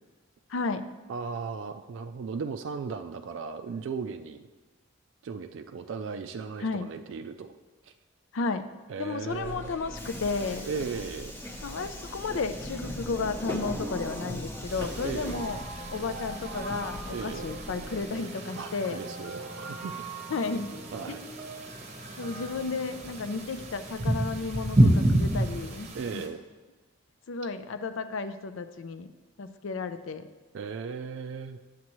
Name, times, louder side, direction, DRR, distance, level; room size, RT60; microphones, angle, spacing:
voice 1, 0.5-0.8 6.6-6.9 8.3-8.6 9.0-10.6 11.6-15.6 15.9-19.0 20.3-20.7 22.2-26.2 27.3-29.1 29.4-30.3, left 4 dB, 75° left, 9 dB, 0.5 m, -33 dB
voice 2, 1.1-4.5 5.2-7.5 7.8-7.9 8.9-9.7 10.6-11.3 15.0-15.4 17.1-17.5 18.5-20.1 20.9-21.2 25.9-26.4 30.5-31.6, right 5 dB, 70° right, 8 dB, 0.3 m, -36 dB
Subway metro underground, 9.3-18.0, equal, 10° left, 0.7 m, -39 dB
sound 1, 14.7-26.3, right 1 dB, 35° right, 0.8 m, -30 dB
9.5 x 7.3 x 3.0 m, 1.3 s
head